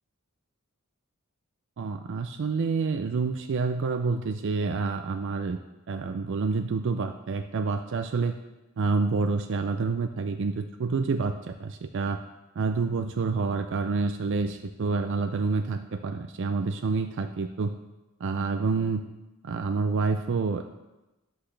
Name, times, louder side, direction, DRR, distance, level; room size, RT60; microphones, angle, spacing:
voice 1, 1.8-5.6 5.9-8.4 8.8-12.2 12.6-17.7 18.2-19.0 19.4-20.6, right 4 dB, 60° right, 7 dB, 0.4 m, -28 dB
10.5 x 7.9 x 3.3 m, 1.0 s
head